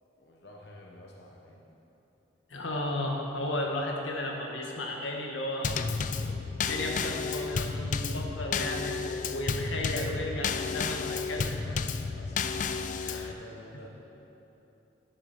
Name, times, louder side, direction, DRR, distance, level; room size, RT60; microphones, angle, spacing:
voice 1, 0.1-1.7 11.4-11.9 12.2-12.4 12.7-13.9, left 1 dB, 60° left, -2 dB, 1.0 m, -50 dB
voice 2, 2.5-6.3 6.6-11.5 13.0-13.3, left 1 dB, 85° left, 0 dB, 1.4 m, -34 dB
Drum kit / Snare drum / Bass drum, 5.6-13.3, left 5 dB, 40° left, 0.3 m, -32 dB
10.0 x 7.1 x 6.4 m, 3.0 s
head